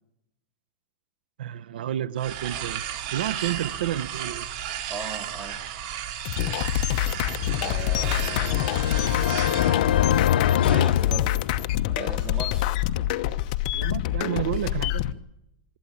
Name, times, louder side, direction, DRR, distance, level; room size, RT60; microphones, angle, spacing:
voice 1, 1.4-4.5 6.6-7.0 13.7-15.2, right 12 dB, 85° right, 0.8 m, -31 dB
sound 1, 2.2-9.8, right 10 dB, 50° right, 2.5 m, -34 dB
voice 2, 4.9-5.6 7.6-9.3 10.7-11.3 11.9-12.7, right 4 dB, 15° right, 2.3 m, -38 dB
sound 2, 6.2-15.1, left 13 dB, 50° left, 0.9 m, -26 dB
sound 3, 7.5-11.9, left 11 dB, 85° left, 0.7 m, -25 dB
24.5 x 12.5 x 8.5 m
supercardioid pair, 150°, 5 cm